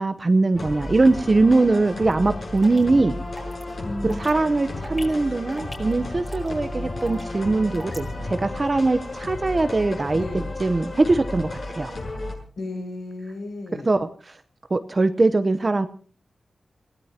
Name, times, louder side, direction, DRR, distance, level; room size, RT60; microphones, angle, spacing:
voice 1, 0.0-3.1 4.0-10.2 10.6-11.9 13.8-14.4 14.7-15.9, right 3 dB, 30° right, 10 dB, 0.8 m, -21 dB
sound 1, 0.5-12.4, left 2 dB, 55° left, 7.7 m, -33 dB
sound 2, 2.1-2.2 2.6-2.8 3.4-3.6 4.1-4.3 4.8-5.1 5.6-5.9 6.3-6.5 7.1-7.3 7.7-8.0, equal, 25° left, 5.0 m, -39 dB
voice 2, 3.8-4.2 4.7-4.9 10.1-10.5 12.6-14.0, left 2 dB, 75° left, 3 dB, 6.2 m, -34 dB
29.0 x 17.5 x 2.9 m, 0.41 s
wide cardioid pair, 115°, 0 cm